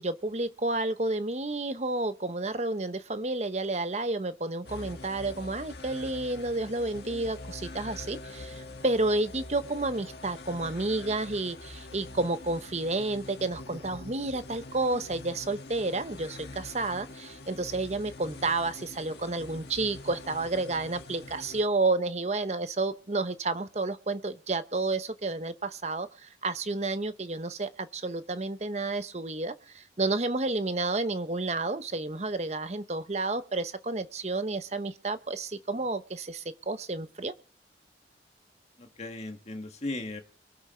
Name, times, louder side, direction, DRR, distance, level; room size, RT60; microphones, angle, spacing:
voice 1, 0.0-37.3, right 2 dB, 40° right, 0.9 m, -31 dB
sound 1, 4.7-21.6, left 2 dB, 65° left, 1.6 m, -44 dB
voice 2, 38.8-40.2, left 2 dB, 35° left, 1.8 m, -37 dB
23.5 x 8.2 x 4.4 m
head